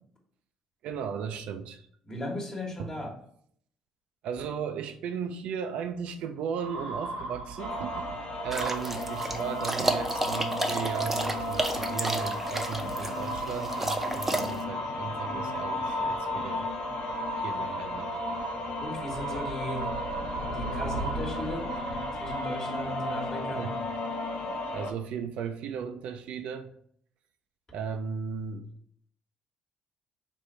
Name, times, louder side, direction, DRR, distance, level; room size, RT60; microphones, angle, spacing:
voice 1, 0.8-1.9 2.8-2.9 4.2-16.7 17.4-18.1 23.6-23.7 24.7-26.7 27.7-28.7, right 7 dB, 70° right, 8 dB, 0.4 m, -36 dB
voice 2, 2.0-3.1 18.8-19.9 20.5-21.7 22.1-23.7, left 1 dB, 30° left, 0 dB, 1.2 m, -36 dB
sound 1, 6.6-23.6, right 4 dB, 90° right, 0.8 m, -38 dB
sound 2, 7.6-24.9, left 2 dB, 65° left, 0.6 m, -34 dB
sound 3, 8.5-14.6, right 1 dB, 15° right, 0.6 m, -32 dB
3.4 x 2.5 x 4.3 m, 0.65 s
supercardioid pair, 65°, 2 cm